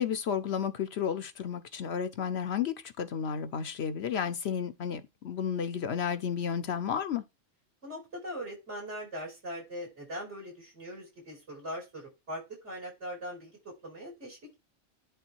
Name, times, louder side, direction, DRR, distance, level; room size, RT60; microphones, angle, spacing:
voice 1, 0.0-7.2, left 7 dB, 65° left, 0.9 m, -32 dB
voice 2, 7.8-13.5 13.8-14.6, equal, 65° right, 5.7 m, -41 dB
10.5 x 3.6 x 4.6 m
omnidirectional pair, 1.3 m